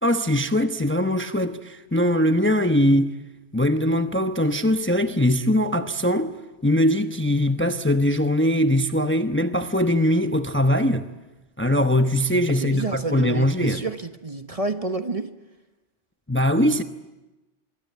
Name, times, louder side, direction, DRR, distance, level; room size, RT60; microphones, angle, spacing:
voice 1, 0.0-3.1 3.5-6.3 6.6-11.1 11.6-13.8 16.3-16.8, left 1 dB, 10° left, 0.9 m, -21 dB
voice 2, 12.5-15.3, right 2 dB, 30° right, 1.2 m, -29 dB
26.5 x 22.5 x 9.5 m
omnidirectional pair, 1.2 m